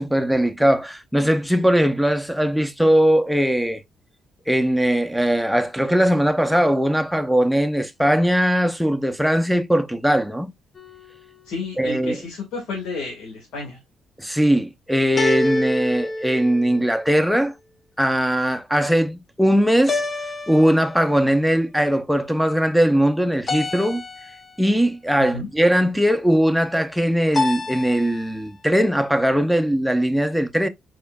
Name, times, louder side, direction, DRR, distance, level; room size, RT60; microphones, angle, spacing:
voice 1, 0.0-3.8 4.5-10.5 11.8-12.2 14.2-17.5 18.0-20.0 20.5-24.0 24.6-30.7, equal, ahead, 0.6 m, -20 dB
sound 1, 10.8-11.4 15.2-17.2 19.9-21.3 23.5-24.7 27.3-28.3, left 2 dB, 35° left, 0.8 m, -28 dB
voice 2, 11.4-13.8 25.2-25.5, left 3 dB, 90° left, 1.9 m, -31 dB
4.9 x 4.3 x 2.3 m
cardioid pair, 90°, 0 cm